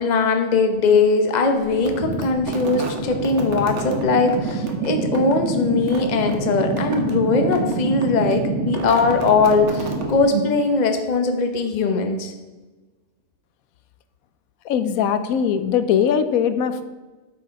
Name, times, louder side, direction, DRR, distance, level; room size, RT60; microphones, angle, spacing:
voice 1, 0.0-12.3, left 4 dB, 35° left, 5 dB, 0.9 m, -20 dB
sound 1, 1.7-10.7, right 3 dB, 60° right, 1.3 m, -27 dB
voice 2, 14.7-16.8, left 8 dB, 90° left, 11 dB, 1.0 m, -20 dB
8.2 x 5.0 x 5.2 m, 1.2 s
omnidirectional pair, 1.4 m